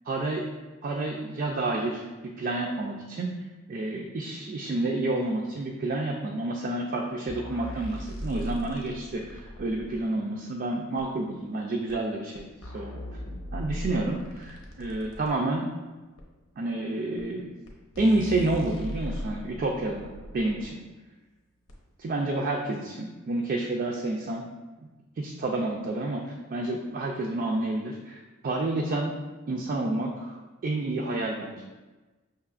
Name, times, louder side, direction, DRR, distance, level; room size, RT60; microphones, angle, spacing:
voice 1, 0.1-0.5 0.8-2.0 2.4-3.3 3.7-12.9 13.5-15.7 16.6-17.5 18.0-20.8 22.0-24.4 25.2-29.1 29.5-30.3 30.6-31.6, right 2 dB, 45° right, 0 dB, 0.3 m, -29 dB
sound 1, 7.3-10.0 11.0-11.1 11.9-12.0 12.4-15.3 16.2-16.3 17.2-17.3 17.7-17.8 17.9-20.7 21.7-21.8, left 1 dB, 90° left, 0.8 m, -38 dB
5.7 x 2.9 x 2.4 m, 1.2 s
head